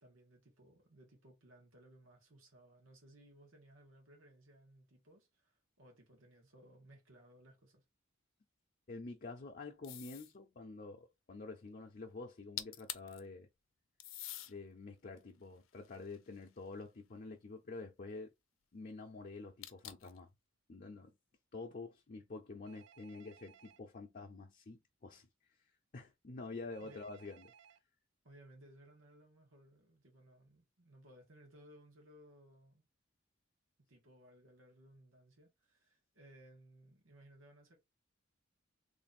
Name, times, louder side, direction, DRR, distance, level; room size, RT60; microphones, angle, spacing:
voice 1, 0.0-7.8 26.8-27.0 28.2-32.8 33.9-37.8, right 1 dB, 85° right, 1.6 m, -61 dB
voice 2, 8.9-13.5 14.5-18.3 18.7-20.3 20.7-21.2 21.5-25.6 25.9-27.4, left 3 dB, 45° left, 0.6 m, -48 dB
sound 1, 9.8-10.4 12.3-12.4 12.6-13.2 14.0-14.5 15.2-16.7 19.6-20.2, left 13 dB, 90° left, 0.6 m, -46 dB
Telephone, 22.7-23.8 26.7-27.8, right 8 dB, 65° right, 0.5 m, -62 dB
3.3 x 2.5 x 4.1 m
head